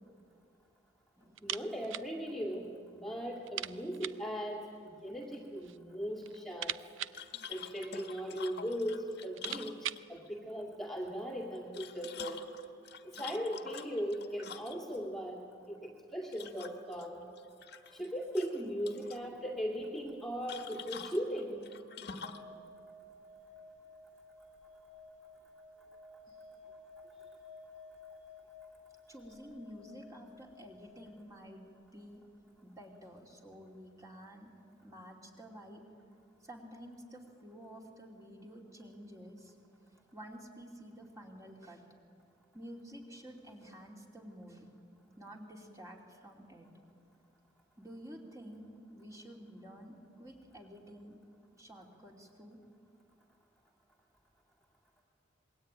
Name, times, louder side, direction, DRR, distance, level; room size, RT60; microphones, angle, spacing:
voice 1, 1.4-2.7 2.9-4.6 5.0-6.8 7.5-9.8 10.1-12.4 13.0-15.4 15.7-17.2 17.9-21.7, equal, ahead, -1 dB, 2.3 m, -38 dB
sound 1, 1.4-2.1 2.4-2.5 2.8-2.9 3.4-4.3 5.2-5.8 6.2-8.1 8.8-8.9 9.2-10.1, right 12 dB, 70° right, 0.6 m, -42 dB
sound 2, 7.1-10.3 11.6-15.0 16.3-17.0 17.4-18.1 18.3-19.2 20.5-22.5, left 7 dB, 55° left, 1.5 m, -47 dB
sound 3, 22.2-32.5, left 3 dB, 45° right, 6.9 m, -55 dB
voice 2, 29.1-32.2 32.6-34.5 34.8-35.8 36.4-39.5 40.1-41.8 42.5-44.7 45.2-46.7 47.8-51.2 51.6-52.6, equal, 15° right, 0 dB, 3.0 m, -50 dB
27.0 x 22.0 x 9.1 m, 2.4 s
head